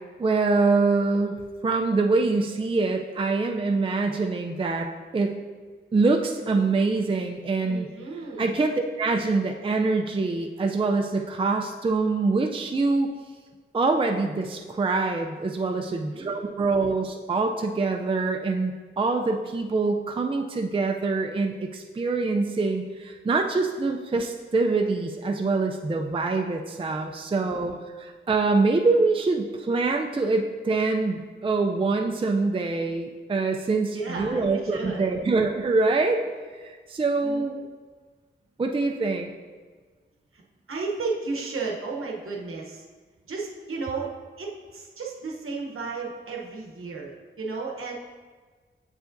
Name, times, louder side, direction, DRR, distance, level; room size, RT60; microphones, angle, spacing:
voice 1, 0.2-4.9 5.1-5.4 5.9-7.9 8.4-13.1 13.7-27.7 28.3-36.2 36.6-37.6 38.6-39.3, right 3 dB, 25° right, 3 dB, 0.4 m, -24 dB
voice 2, 7.6-8.6 15.8-16.5 27.4-27.7 33.9-35.1 37.2-37.5 40.3-40.4 40.7-42.9 43.3-44.1 44.4-47.9, right 4 dB, 85° right, -2 dB, 0.9 m, -34 dB
7.9 x 4.8 x 2.6 m, 1.5 s
wide cardioid pair, 75°, 21 cm